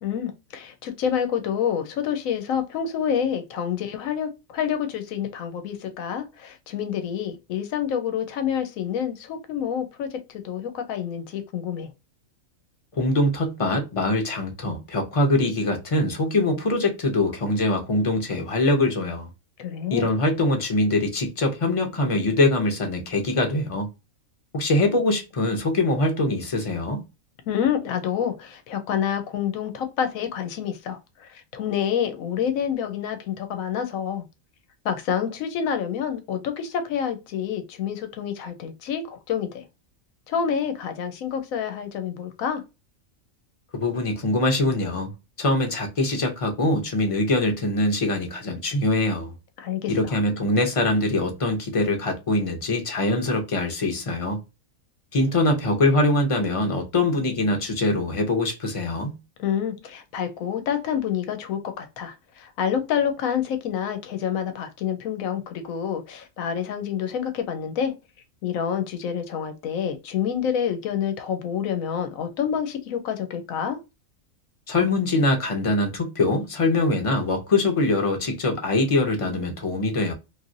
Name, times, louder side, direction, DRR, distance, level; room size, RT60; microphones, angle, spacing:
voice 1, 0.0-11.9 19.6-20.1 27.5-34.2 34.8-39.6 40.3-42.6 49.6-50.1 59.4-67.9 68.4-73.8, left 8 dB, 90° left, 1.0 m, -28 dB
voice 2, 12.9-19.3 19.9-23.9 24.5-27.0 43.7-45.1 45.4-49.3 49.9-54.4 55.1-59.2 74.7-80.1, left 2 dB, 40° left, 0.5 m, -23 dB
3.1 x 2.4 x 2.5 m
omnidirectional pair, 1.4 m